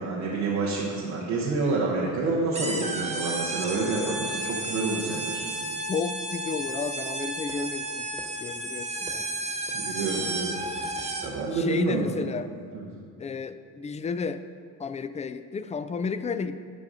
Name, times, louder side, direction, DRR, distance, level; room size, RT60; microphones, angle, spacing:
voice 1, 0.0-5.4 9.7-10.6 11.2-12.1 12.7-12.8, right 3 dB, 90° right, -6 dB, 1.2 m, -28 dB
sound 1, 2.5-11.5, right 2 dB, 15° right, 1.3 m, -32 dB
voice 2, 5.9-8.1 8.4-9.4 11.5-12.5 13.2-14.4 14.8-16.6, left 5 dB, 20° left, 12 dB, 0.3 m, -32 dB
12.5 x 4.8 x 4.0 m, 2.4 s
supercardioid pair, 70°, 41 cm